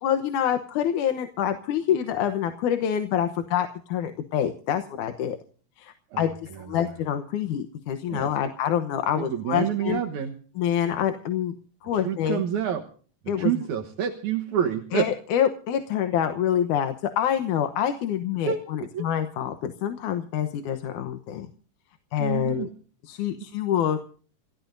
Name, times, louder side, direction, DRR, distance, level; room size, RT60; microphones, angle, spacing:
voice 1, 0.0-5.4 5.8-6.3 6.6-10.0 10.6-11.5 11.8-12.4 13.3-13.5 14.9-21.5 22.1-22.7 23.0-24.0, left 9 dB, 80° left, 8 dB, 2.5 m, -26 dB
voice 2, 9.2-10.4 11.9-12.8 13.4-15.1 18.5-18.6 18.9-19.1 22.2-22.7, right 9 dB, 75° right, 5 dB, 2.5 m, -27 dB
28.0 x 16.5 x 2.6 m, 0.43 s
omnidirectional pair, 3.5 m